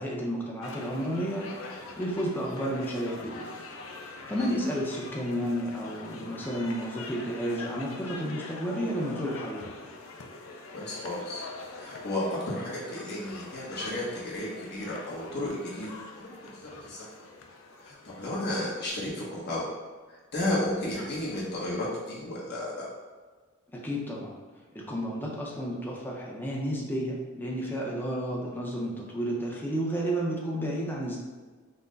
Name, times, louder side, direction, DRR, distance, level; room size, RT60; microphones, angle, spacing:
voice 1, 0.0-3.5 4.3-9.7 23.7-24.3 24.7-31.2, equal, 10° left, -3 dB, 0.6 m, -32 dB
sound 1, 0.6-18.9, left 3 dB, 70° left, 0.5 m, -44 dB
voice 2, 10.7-11.4 11.7-15.9 16.1-17.1 17.8-19.7 20.3-22.9, left 1 dB, 50° left, -6 dB, 1.1 m, -33 dB
5.6 x 2.1 x 3.9 m, 1.4 s
head